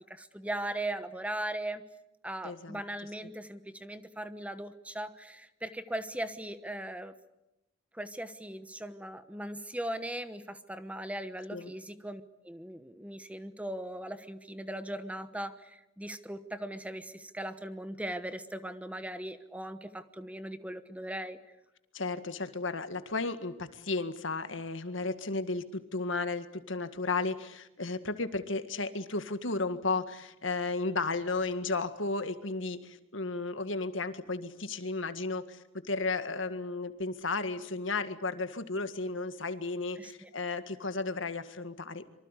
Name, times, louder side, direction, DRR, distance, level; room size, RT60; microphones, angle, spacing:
voice 1, 0.1-1.8 2.2-7.1 7.9-21.4 40.0-40.3, right 1 dB, 5° right, 11 dB, 1.1 m, -39 dB
voice 2, 2.4-2.8 11.5-11.7 21.9-42.1, left 3 dB, 75° left, 10 dB, 1.9 m, -34 dB
25.5 x 24.5 x 8.3 m, 0.88 s
head